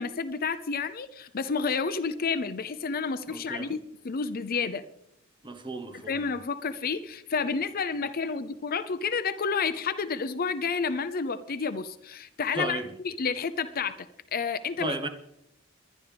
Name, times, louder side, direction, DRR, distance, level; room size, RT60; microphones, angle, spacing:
voice 1, 0.0-3.8 4.0-4.8 6.1-14.1 14.3-15.0, left 5 dB, 45° left, 0.6 m, -30 dB
voice 2, 3.3-3.7 5.4-6.2 12.5-12.9 14.8-15.1, right 2 dB, 25° right, 1.1 m, -34 dB
21.5 x 11.0 x 3.4 m
head